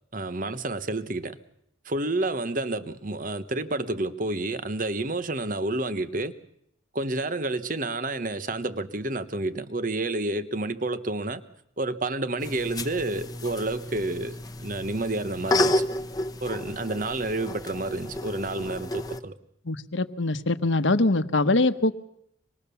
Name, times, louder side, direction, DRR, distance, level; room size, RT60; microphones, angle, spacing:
voice 1, 0.1-1.4 1.8-6.3 6.9-11.4 11.8-15.9 16.4-19.4, right 2 dB, 45° right, 1.2 m, -29 dB
sound 1, 12.4-19.2, left 1 dB, 20° left, 1.0 m, -31 dB
voice 2, 19.6-21.9, left 2 dB, 70° left, 1.2 m, -23 dB
26.0 x 20.5 x 7.0 m
head